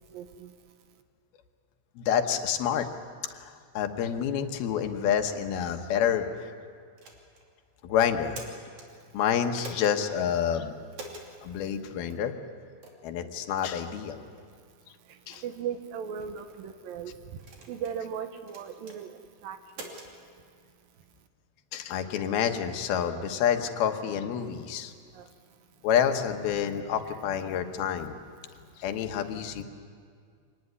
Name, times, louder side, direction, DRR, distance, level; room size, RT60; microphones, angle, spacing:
voice 1, 0.1-0.5 15.4-17.1 17.7-19.9 25.1-25.3, right 8 dB, 75° right, 8 dB, 2.8 m, -37 dB
voice 2, 2.0-2.9 3.3-6.5 7.8-8.4 9.1-10.7 11.4-12.3 13.0-14.2 15.3-15.4 21.7-24.9 25.8-28.2 28.8-29.6, left 8 dB, 80° left, 6 dB, 3.1 m, -28 dB
sound 1, 7.0-7.5 8.1-8.9 9.6-10.0 10.9-11.3 12.1-12.2 12.8-13.0 13.6-13.8 14.4-14.5 15.1-15.4 16.2-16.6 17.4-18.0 18.5-19.0 19.7-20.1, right 2 dB, 50° right, 3.9 m, -44 dB
25.5 x 19.0 x 9.7 m, 2.1 s
omnidirectional pair, 4.3 m